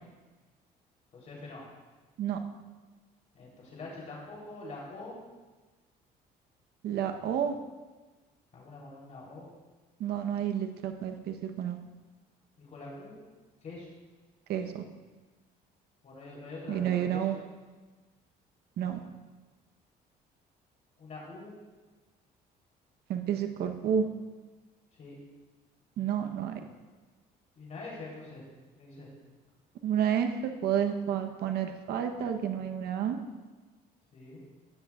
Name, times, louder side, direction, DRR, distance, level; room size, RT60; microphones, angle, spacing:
voice 1, 1.1-1.6 3.3-5.2 8.5-9.5 12.6-13.2 13.6-13.9 16.0-17.4 18.9-19.1 21.0-21.5 24.9-25.1 27.5-28.4 28.7-29.1 34.1-34.4, left 2 dB, 45° left, -4 dB, 3.4 m, -44 dB
voice 2, 6.8-7.5 10.0-11.8 14.5-14.8 16.7-17.3 18.8-19.0 23.1-24.0 26.0-26.5 29.8-33.2, right 9 dB, 70° right, 6 dB, 0.9 m, -30 dB
16.0 x 10.5 x 2.4 m, 1.3 s
cardioid pair, 110°, 17 cm